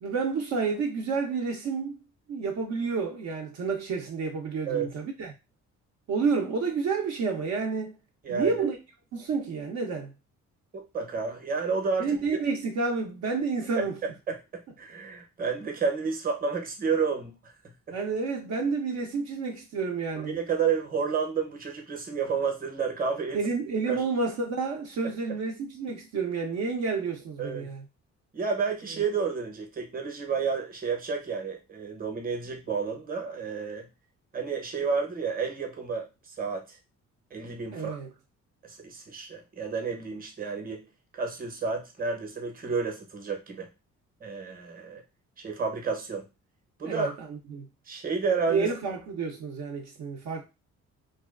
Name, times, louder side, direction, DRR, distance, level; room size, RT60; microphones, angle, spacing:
voice 1, 0.0-2.0 2.3-5.3 6.1-8.0 8.3-8.8 9.1-10.1 12.0-14.0 17.9-20.4 23.3-27.8 28.9-29.0 37.7-38.1 46.8-47.7 48.5-50.4, right 4 dB, 65° right, 0.6 m, -30 dB
voice 2, 8.2-8.7 10.7-12.4 13.8-13.9 14.3-17.5 20.2-23.4 23.9-24.0 27.4-27.7 28.3-33.9 34.3-36.8 37.3-38.0 38.6-40.8 41.1-43.7 44.2-45.0 45.4-46.2 46.8-47.1 47.9-48.7, right 5 dB, 30° right, 0.8 m, -31 dB
2.6 x 2.3 x 2.4 m
cardioid pair, 90°, 30 cm